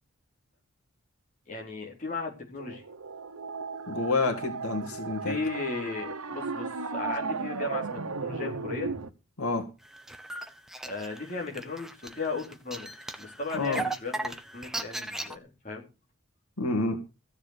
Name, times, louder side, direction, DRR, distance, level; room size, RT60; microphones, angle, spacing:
voice 1, 1.5-2.8 5.2-8.9 10.8-12.9 13.2-15.8, left 3 dB, 35° left, 4.2 m, -36 dB
sound 1, 2.6-9.1, right 4 dB, 90° right, 1.2 m, -35 dB
voice 2, 3.9-5.4 9.4-9.7 13.5-13.8 16.6-17.0, left 3 dB, 85° left, 2.4 m, -28 dB
sound 2, 9.8-15.3, right 2 dB, ahead, 0.9 m, -37 dB
15.5 x 7.3 x 6.7 m
head